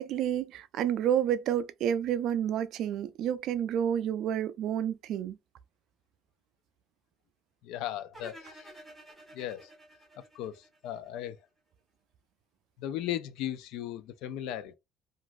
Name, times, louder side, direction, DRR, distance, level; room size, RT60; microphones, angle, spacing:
voice 1, 0.0-5.4, right 9 dB, 60° right, 0.3 m, -29 dB
voice 2, 7.6-8.7 9.3-9.7 10.3-11.4 12.8-14.8, left 11 dB, 85° left, 0.4 m, -37 dB
sound 1, 8.1-11.3, right 1 dB, ahead, 1.4 m, -52 dB
3.0 x 2.5 x 2.4 m
cardioid pair, 160°, 0 cm